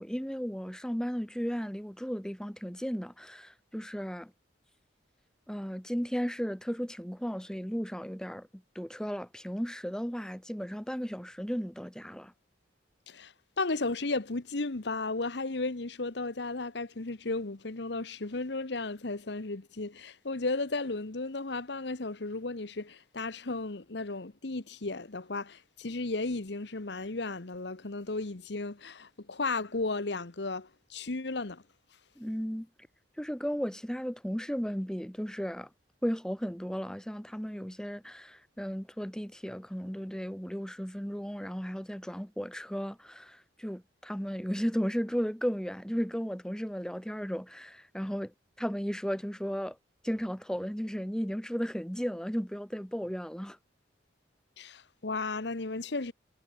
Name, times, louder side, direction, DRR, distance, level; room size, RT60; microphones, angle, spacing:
voice 1, 0.0-4.3 5.5-12.3 32.2-32.7 33.2-35.7 36.0-49.8 50.0-53.6, equal, 5° left, 1.7 m, -35 dB
voice 2, 13.1-31.6 54.6-56.1, left 3 dB, 65° left, 1.2 m, -34 dB
head